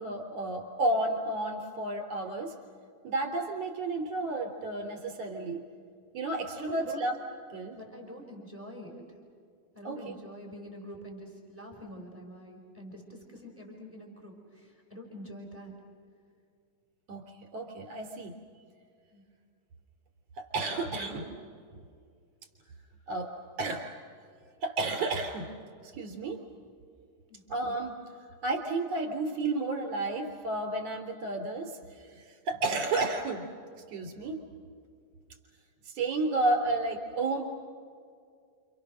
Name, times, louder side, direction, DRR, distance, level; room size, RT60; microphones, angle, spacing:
voice 1, 0.0-2.5 3.0-5.6 6.1-7.1 7.5-7.8 9.8-10.2 17.1-18.3 20.4-21.3 23.1-23.3 23.6-23.9 24.6-25.5 25.8-26.4 27.5-27.9 28.4-33.5 33.9-34.4 35.9-37.4, right 2 dB, 45° right, 3 dB, 4.3 m, -32 dB
voice 2, 6.5-7.0 7.7-9.0 9.7-15.7 19.1-19.2 20.9-21.2 27.3-27.4, equal, 5° right, 1 dB, 4.3 m, -45 dB
29.5 x 28.5 x 6.5 m, 2.3 s
omnidirectional pair, 4.2 m